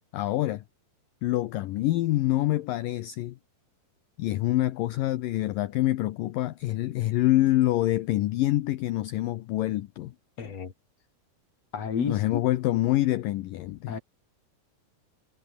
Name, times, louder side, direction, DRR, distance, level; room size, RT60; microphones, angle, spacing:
voice 1, 0.1-0.6 1.2-3.4 4.2-10.1 12.1-14.0, left 15 dB, 75° left, 2.1 m, -26 dB
voice 2, 10.4-10.7 11.7-12.4 13.9-14.0, left 6 dB, 45° left, 3.1 m, -31 dB
omnidirectional pair, 4.9 m